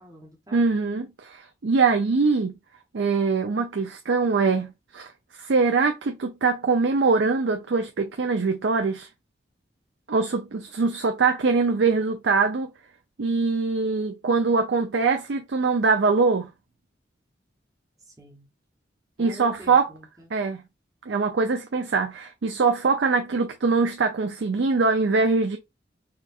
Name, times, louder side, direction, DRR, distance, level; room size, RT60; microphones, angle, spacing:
voice 1, 0.0-0.6 18.2-18.5 19.2-20.3, equal, 20° right, 1.0 m, -45 dB
voice 2, 0.5-2.5 2.9-9.1 10.1-12.7 13.2-16.5 19.2-19.9 20.3-20.6 21.1-25.6, right 4 dB, 85° right, 0.5 m, -23 dB
4.3 x 2.4 x 2.4 m
head